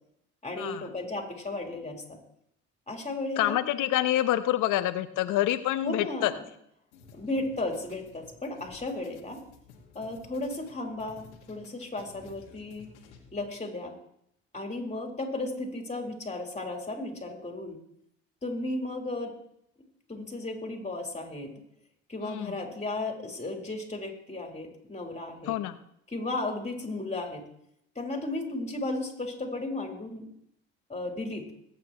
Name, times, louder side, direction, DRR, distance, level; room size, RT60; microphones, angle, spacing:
voice 1, 0.4-2.2 2.9-3.6 5.8-6.4 7.1-9.4 9.9-12.9 13.3-13.9 14.5-17.8 18.4-19.3 20.1-21.5 22.1-25.6 26.1-27.4 27.9-30.3 30.9-31.5, left 2 dB, 20° left, 1 dB, 4.3 m, -34 dB
voice 2, 3.4-6.3 22.2-22.6 25.5-25.8, left 14 dB, 65° left, 11 dB, 1.2 m, -27 dB
sound 1, 6.9-13.5, left 5 dB, 85° left, 2.1 m, -54 dB
22.5 x 9.0 x 3.2 m, 0.73 s
hypercardioid pair, 60°, 34 cm